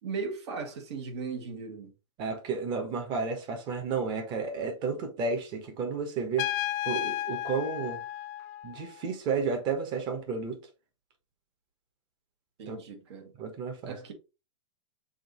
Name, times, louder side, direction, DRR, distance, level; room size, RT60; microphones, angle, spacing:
voice 1, 0.0-1.9 12.6-13.3 13.8-14.1, right 5 dB, 60° right, 1.6 m, -37 dB
voice 2, 2.2-6.5 6.8-8.0 8.6-10.6 12.7-12.8 13.4-13.9, right 5 dB, 30° right, 1.3 m, -32 dB
Trumpet, 6.4-9.0, left 14 dB, 35° left, 0.4 m, -33 dB
6.3 x 2.7 x 3.1 m
hypercardioid pair, 145°, 16 cm